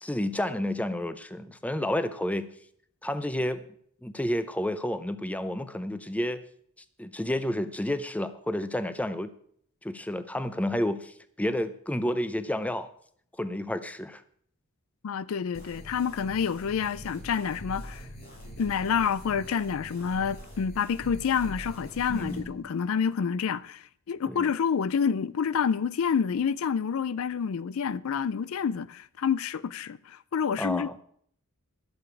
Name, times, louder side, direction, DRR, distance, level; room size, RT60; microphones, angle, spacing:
voice 1, 0.0-2.5 3.0-3.6 4.0-6.4 7.0-9.3 9.8-12.9 13.4-14.2 22.1-22.6 24.3-24.5 30.6-31.0, left 1 dB, 5° left, 0.6 m, -30 dB
voice 2, 15.0-18.1 18.6-31.0, left 6 dB, 65° left, 0.4 m, -28 dB
sound 1, 15.5-22.4, equal, 45° left, 7.0 m, -43 dB
11.5 x 7.0 x 8.2 m
head